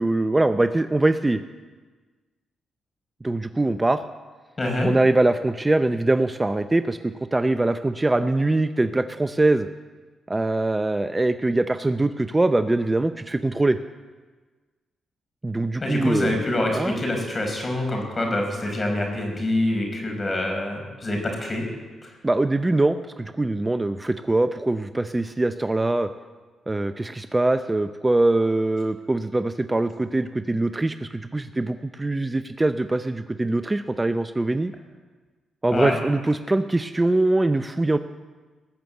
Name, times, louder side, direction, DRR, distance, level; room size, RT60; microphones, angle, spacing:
voice 1, 0.0-1.4 3.2-4.0 4.8-9.7 10.3-13.8 15.4-16.3 16.7-17.0 22.2-26.1 26.7-34.7 35.6-38.0, right 2 dB, 20° right, 10 dB, 0.6 m, -23 dB
voice 2, 4.6-4.9 15.8-21.6 22.0-22.1 35.7-36.0, left 1 dB, 35° left, 2 dB, 5.2 m, -25 dB
20.0 x 6.9 x 7.8 m, 1.4 s
supercardioid pair, 60°, 0 cm